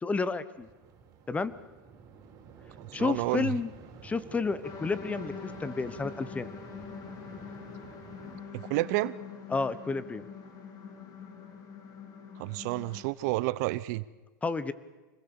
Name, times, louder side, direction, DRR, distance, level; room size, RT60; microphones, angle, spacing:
voice 1, 0.0-0.7 1.3-1.5 2.9-3.7 4.0-6.5 9.5-10.3 14.4-14.7, left 4 dB, 15° left, 16 dB, 1.1 m, -31 dB
sound 1, 0.5-8.4, right 5 dB, 35° right, 5.2 m, -51 dB
voice 2, 2.8-3.5 8.5-9.1 12.4-14.0, right 19 dB, 55° right, 18 dB, 0.9 m, -30 dB
sound 2, 4.6-13.0, left 6 dB, 35° left, 4.5 m, -44 dB
26.0 x 21.0 x 7.2 m, 1.2 s
hypercardioid pair, 125°, 11 cm